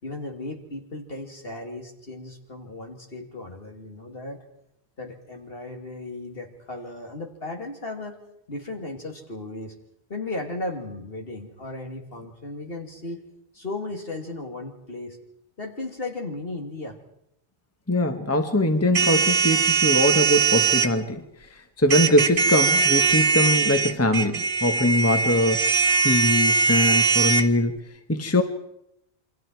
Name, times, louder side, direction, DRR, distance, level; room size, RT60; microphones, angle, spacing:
voice 1, 0.0-4.4 5.0-8.2 8.5-9.7 10.1-13.3 13.5-15.2 15.6-17.0, left 2 dB, 55° left, 2 dB, 3.1 m, -35 dB
voice 2, 17.9-21.2 21.5-27.7 28.1-28.4, left 1 dB, 15° left, 6 dB, 1.3 m, -22 dB
sound 1, 18.9-20.9 21.9-27.4, right 5 dB, 50° right, 1.4 m, -21 dB
28.5 x 24.5 x 4.7 m, 0.80 s
omnidirectional pair, 1.2 m